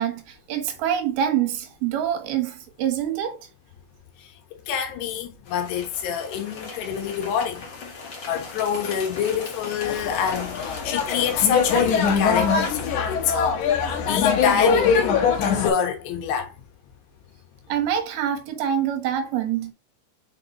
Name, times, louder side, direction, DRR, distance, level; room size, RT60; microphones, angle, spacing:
voice 1, 0.0-3.4 17.7-19.7, right 9 dB, 75° right, 3.0 m, -25 dB
voice 2, 4.7-7.7 8.3-13.6 14.0-16.5, left 8 dB, 90° left, 3.5 m, -26 dB
sound 1, 5.4-12.9, left 4 dB, 45° left, 1.7 m, -38 dB
sound 2, 9.8-15.7, left 6 dB, 60° left, 2.3 m, -22 dB
6.8 x 5.3 x 3.0 m
omnidirectional pair, 4.7 m